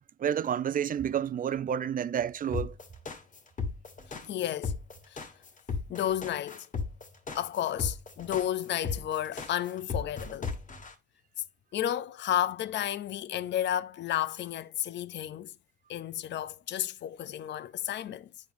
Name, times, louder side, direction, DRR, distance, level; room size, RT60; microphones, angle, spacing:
voice 1, 0.2-2.7, right 9 dB, 45° right, 0.5 m, -30 dB
sound 1, 2.5-10.9, left 4 dB, 40° left, 1.5 m, -35 dB
voice 2, 4.2-4.8 5.1-5.2 5.9-6.7 7.3-10.5 11.7-15.5 15.9-18.3, left 11 dB, 65° left, 0.6 m, -32 dB
9.7 x 5.2 x 2.6 m
cardioid pair, 90°, 20 cm